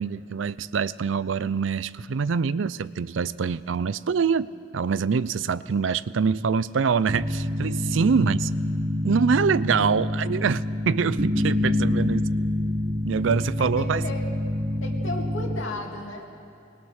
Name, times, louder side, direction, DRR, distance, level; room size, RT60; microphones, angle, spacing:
voice 1, 0.0-4.5 4.7-8.5 9.0-12.3 13.1-14.0, right 5 dB, 80° right, 18 dB, 0.5 m, -24 dB
sound 1, 7.1-15.6, left 1 dB, 40° right, 1.0 m, -26 dB
voice 2, 13.6-14.3 14.8-16.4, left 1 dB, 85° left, 1 dB, 2.5 m, -35 dB
21.0 x 19.5 x 6.4 m, 2.5 s
head